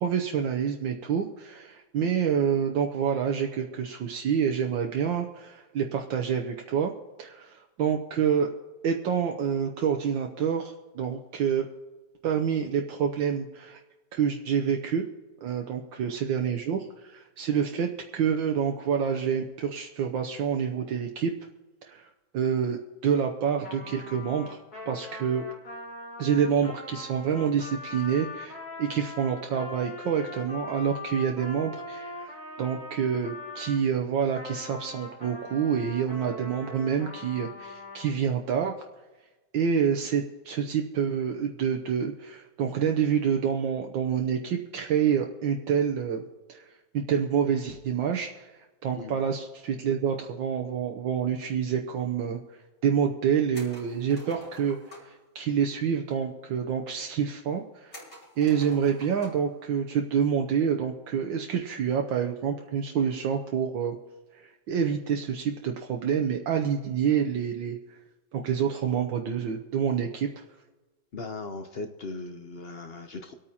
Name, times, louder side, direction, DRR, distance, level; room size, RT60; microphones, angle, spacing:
voice 1, 0.0-6.9 7.2-8.5 8.8-11.7 12.2-13.8 14.1-15.0 15.4-21.3 21.9-24.6 24.9-25.4 26.2-38.7 39.5-46.6 46.9-48.5 48.8-52.4 52.8-58.0 58.4-64.0 64.3-67.8 68.3-70.4, right 7 dB, 75° right, 3 dB, 1.5 m, -27 dB
Trumpet, 23.6-33.8 34.3-38.1, left 2 dB, 50° left, 3.5 m, -41 dB
sound 1, 53.5-55.2 57.9-59.5 59.9-60.0 61.6-61.9, equal, 30° left, 3.5 m, -47 dB
voice 2, 71.1-73.3, left 3 dB, 70° left, 5 dB, 0.5 m, -38 dB
25.5 x 8.8 x 2.8 m, 1.2 s
omnidirectional pair, 2.2 m